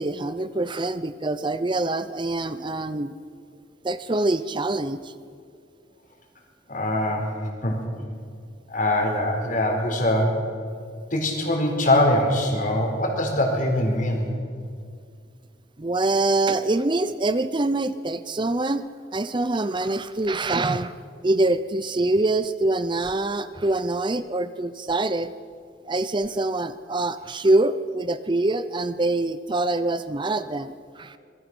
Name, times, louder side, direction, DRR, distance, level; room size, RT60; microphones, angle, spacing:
voice 1, 0.0-3.1 3.8-5.1 15.8-18.8 19.1-20.9 21.2-25.3 25.9-31.2, right 2 dB, 25° right, 12 dB, 0.6 m, -24 dB
voice 2, 6.7-7.3 7.6-7.8 8.7-10.4 11.1-14.3, left 1 dB, 45° left, 2 dB, 4.5 m, -23 dB
25.5 x 21.5 x 6.2 m, 2.3 s
head